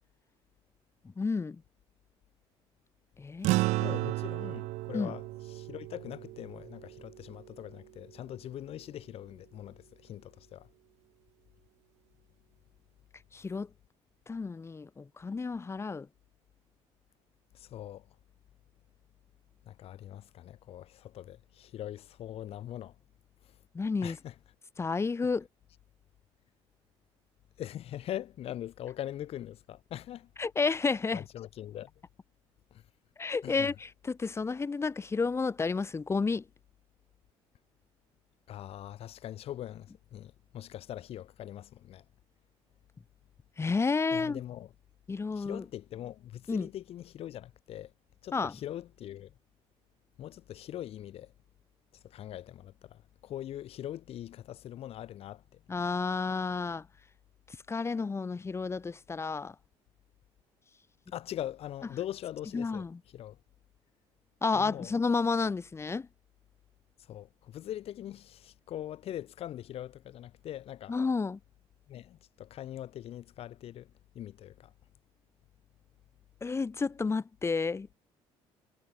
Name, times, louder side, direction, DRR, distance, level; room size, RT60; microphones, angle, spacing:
voice 1, 1.2-1.6 3.2-3.5 4.9-5.1 13.3-13.7 14.3-16.1 23.7-24.2 24.8-25.5 30.4-31.2 33.2-36.4 43.6-44.4 45.1-45.6 46.5-46.7 48.3-48.5 55.7-56.8 57.7-59.5 62.5-62.9 64.4-66.1 70.9-71.4 76.4-77.9, left 4 dB, 25° left, 5.6 m, -31 dB
sound 1, 3.4-8.1, right 20 dB, 90° right, 1.3 m, -33 dB
voice 2, 3.8-10.7 17.5-18.1 19.7-22.9 23.4-23.5 24.0-24.3 27.6-30.3 30.8-31.9 32.7-32.8 33.4-33.7 38.5-42.0 44.1-44.7 45.3-47.9 48.2-49.3 50.2-51.3 51.9-55.4 61.1-62.9 63.1-63.4 64.5-64.9 67.0-71.0 71.9-73.9 74.1-74.7, left 12 dB, 60° left, 4.1 m, -42 dB
cardioid pair, 125°, 11 cm